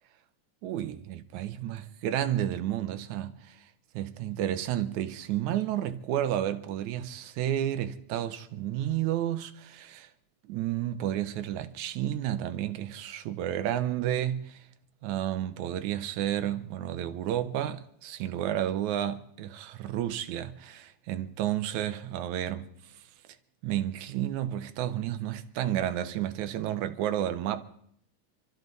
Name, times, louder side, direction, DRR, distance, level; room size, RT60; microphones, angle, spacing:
voice 1, 0.6-3.6 3.9-10.1 10.5-14.6 15.0-22.7 23.6-27.6, right 11 dB, 80° right, 2.2 m, -31 dB
27.5 x 13.0 x 4.0 m
omnidirectional pair, 3.3 m